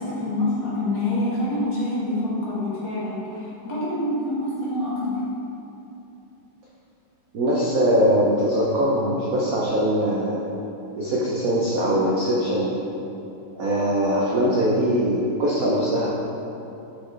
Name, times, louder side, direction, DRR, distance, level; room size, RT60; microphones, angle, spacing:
voice 1, 0.0-5.2, left 1 dB, 50° left, -8 dB, 1.5 m, -26 dB
voice 2, 7.3-10.5 11.0-12.7 13.5-16.1, equal, 70° right, -5 dB, 0.8 m, -21 dB
6.4 x 5.9 x 3.3 m, 2.9 s
omnidirectional pair, 2.4 m